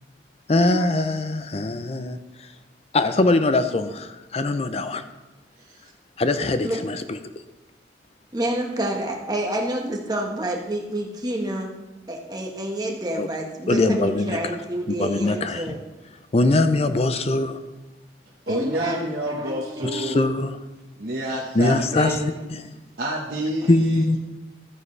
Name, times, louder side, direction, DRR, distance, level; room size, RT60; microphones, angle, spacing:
voice 1, 0.5-2.2 2.9-5.0 6.2-7.0 13.2-13.3 13.7-14.4 15.0-15.7 16.3-17.6 19.9-20.6 21.6-22.2 22.5-22.6 23.7-24.2, left 2 dB, 35° left, 0.5 m, -22 dB
voice 2, 8.3-11.7 12.1-15.8 18.5-20.2 21.6-22.2, right 1 dB, 20° right, 1.4 m, -29 dB
voice 3, 18.5-20.3 21.0-22.3 23.0-24.2, equal, 55° right, 1.3 m, -28 dB
13.5 x 9.5 x 3.3 m
head